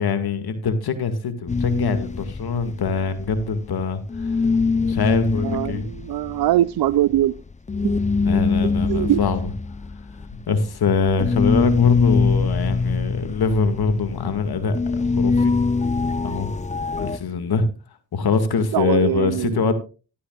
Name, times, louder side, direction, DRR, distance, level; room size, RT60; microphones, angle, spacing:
voice 1, 0.0-4.4 4.8-5.8 8.1-9.5 10.5-15.6 16.2-16.5 17.0-17.7 18.1-19.7, left 5 dB, 65° left, 2.1 m, -23 dB
sound 1, 1.5-3.8 4.1-17.2, left 4 dB, 20° left, 0.7 m, -23 dB
voice 2, 5.4-7.4 8.9-9.2 18.7-19.6, right 13 dB, 65° right, 0.6 m, -21 dB
12.5 x 12.5 x 2.4 m
supercardioid pair, 45°, 40 cm